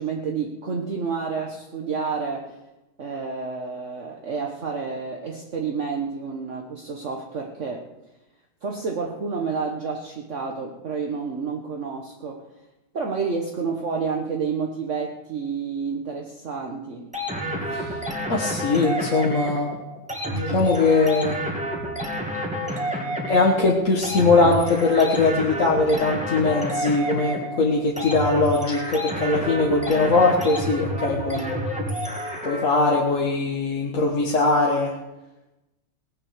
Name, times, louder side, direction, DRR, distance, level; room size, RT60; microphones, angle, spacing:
voice 1, 0.0-2.6 3.0-7.8 8.6-12.5 12.9-17.1, right 5 dB, 45° right, 1 dB, 1.5 m, -29 dB
sound 1, 17.1-32.9, equal, 5° right, 2.3 m, -29 dB
voice 2, 18.3-19.7 20.3-21.4 23.3-31.6 32.4-34.9, left 3 dB, 50° left, -2 dB, 1.9 m, -21 dB
19.0 x 8.7 x 6.6 m, 0.98 s
omnidirectional pair, 1.8 m